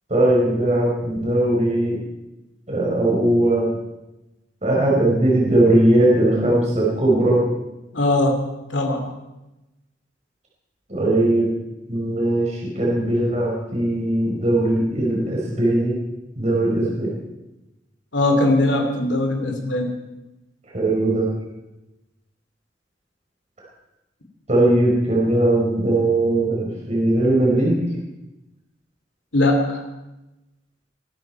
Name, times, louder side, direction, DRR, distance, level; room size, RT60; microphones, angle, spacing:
voice 1, 0.1-2.0 2.7-3.7 4.6-7.4 10.9-11.5 11.9-16.0 16.4-17.1 20.7-21.3 24.5-27.8, right 1 dB, 35° right, -3 dB, 4.4 m, -19 dB
voice 2, 7.9-8.4 8.7-9.0 18.1-19.9 29.3-29.8, left 2 dB, 70° left, 3 dB, 2.7 m, -20 dB
22.5 x 12.5 x 4.6 m, 1.0 s
head